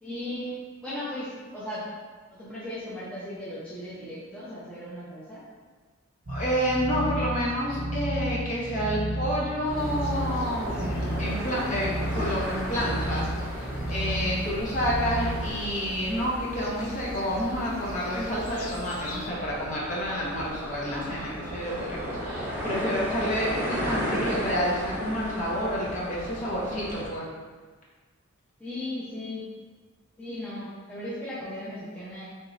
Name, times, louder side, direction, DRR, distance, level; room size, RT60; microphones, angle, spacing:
voice 1, 0.0-1.9 2.3-5.4 28.6-29.5 30.2-32.3, left 1 dB, 5° left, -10 dB, 0.6 m, -37 dB
voice 2, 6.3-27.2, equal, 35° left, -6 dB, 1.0 m, -29 dB
sound 1, 6.3-15.5, right 1 dB, 50° right, 0.6 m, -32 dB
sound 2, 9.6-27.1, equal, 10° right, 1.1 m, -35 dB
sound 3, 9.8-19.3, left 1 dB, 85° left, 0.5 m, -44 dB
3.6 x 2.8 x 4.0 m, 1.4 s
head